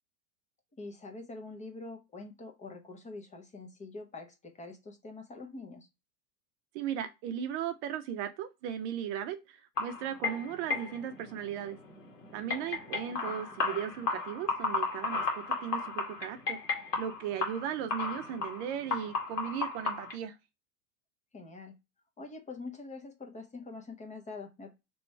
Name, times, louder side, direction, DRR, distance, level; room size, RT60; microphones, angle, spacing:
voice 1, 0.7-5.9 13.0-13.4 21.3-21.8 22.2-24.7, left 3 dB, 15° left, 0.8 m, -45 dB
voice 2, 6.7-11.8 12.3-16.6 17.0-20.3, right 9 dB, 50° right, 0.6 m, -37 dB
sound 1, 9.8-20.1, left 4 dB, 90° left, 1.7 m, -35 dB
3.1 x 3.0 x 4.4 m
hypercardioid pair, 110°, 47 cm